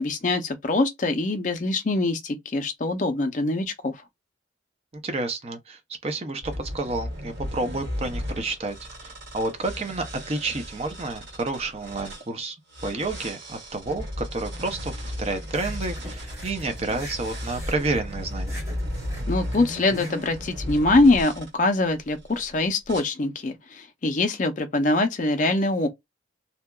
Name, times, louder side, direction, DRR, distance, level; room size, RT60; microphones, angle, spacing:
voice 1, 0.0-4.0 19.3-25.9, left 2 dB, 40° left, 0.5 m, -23 dB
voice 2, 5.0-8.7 9.0-12.6 12.8-18.6, right 2 dB, 35° right, 0.5 m, -30 dB
sound 1, 6.4-12.3 12.7-21.5 22.1-22.5 22.9-23.0, equal, 70° right, 1.7 m, -35 dB
sound 2, 15.5-21.2, equal, 15° right, 0.9 m, -43 dB
2.7 x 2.2 x 2.2 m
head